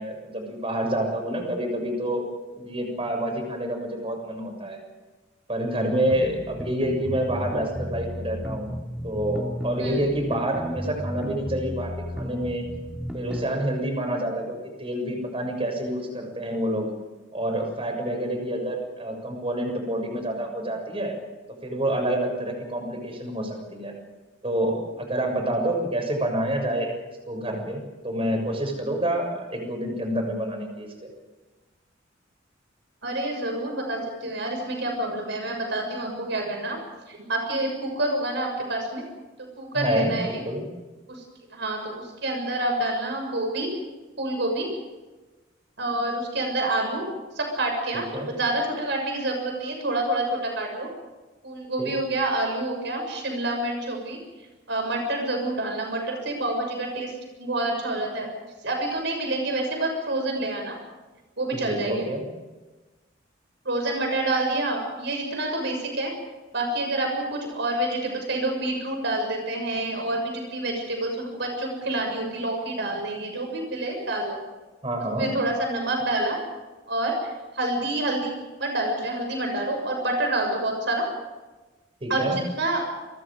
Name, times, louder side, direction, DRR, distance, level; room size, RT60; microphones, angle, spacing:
voice 1, 0.0-2.3 2.6-4.8 5.5-8.7 9.0-12.7 13.1-16.9 17.3-21.1 21.6-23.9 24.4-26.9 27.3-31.1 39.7-40.7 47.9-48.3 51.8-51.9 61.6-62.2 74.8-75.3 82.0-82.4, right 1 dB, 30° right, 3 dB, 6.8 m, -28 dB
sound 1, 6.1-13.5, equal, 5° right, 2.6 m, -33 dB
voice 2, 33.0-36.8 37.1-39.0 39.4-40.4 41.1-41.2 41.5-43.7 44.2-44.7 45.8-47.0 47.4-50.9 51.4-54.2 54.7-57.1 57.4-58.3 58.6-60.8 61.4-62.1 63.7-66.1 66.5-74.4 75.2-76.4 76.9-78.3 78.6-81.0 82.1-82.8, right 2 dB, 60° right, 2 dB, 6.7 m, -27 dB
29.5 x 24.5 x 5.1 m, 1.2 s
head